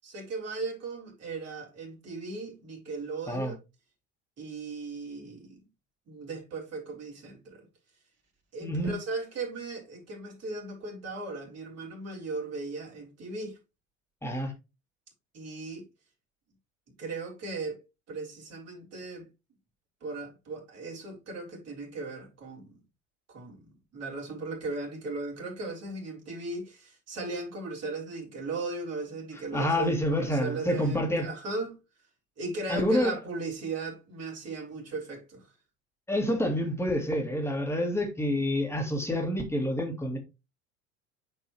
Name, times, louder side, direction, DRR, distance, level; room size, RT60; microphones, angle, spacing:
voice 1, 0.0-3.6 4.4-5.6 6.1-7.7 8.5-13.6 15.3-15.8 17.0-19.2 20.0-22.8 23.3-31.8 32.4-35.5, right 3 dB, 40° right, 3.6 m, -37 dB
voice 2, 8.6-8.9 14.2-14.5 29.5-31.3 32.7-33.2 36.1-40.2, left 1 dB, 5° left, 2.3 m, -28 dB
9.7 x 4.6 x 3.0 m
figure-of-eight pair, 75°, 39 cm